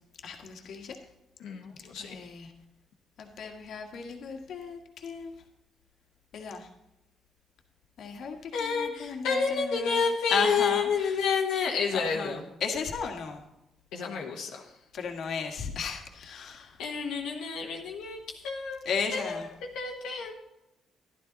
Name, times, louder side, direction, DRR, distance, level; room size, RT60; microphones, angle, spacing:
voice 1, 0.2-1.0 2.0-2.5 3.2-5.3 6.3-6.7 8.0-10.0 10.3-11.2 11.9-13.4 14.9-16.8 18.8-19.5, left 5 dB, 65° left, 3 dB, 1.6 m, -35 dB
voice 2, 1.4-2.3 8.5-12.4 13.9-14.7 16.8-18.8 19.1-19.5 19.7-20.3, left 5 dB, 90° left, -1 dB, 1.3 m, -30 dB
11.5 x 11.5 x 4.0 m, 0.92 s
cardioid pair, 90°, 0 cm